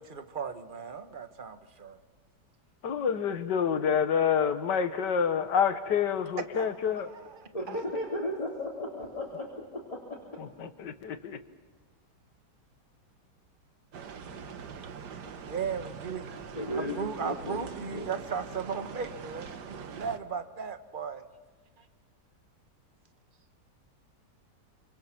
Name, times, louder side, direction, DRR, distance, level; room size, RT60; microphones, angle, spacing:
voice 1, 0.0-2.0 6.5-7.8 15.5-16.4 16.7-21.2 21.8-21.9, right 6 dB, 35° right, 8 dB, 1.3 m, -37 dB
voice 2, 2.8-7.1 10.4-11.4, left 7 dB, 90° left, 9 dB, 1.9 m, -28 dB
voice 3, 7.5-10.2 16.6-17.0 17.2-18.1, left 1 dB, 20° left, -3 dB, 3.5 m, -35 dB
sound 1, 13.9-20.2, right 6 dB, 80° right, 1.8 m, -43 dB
27.5 x 26.0 x 6.1 m, 1.3 s
omnidirectional pair, 1.8 m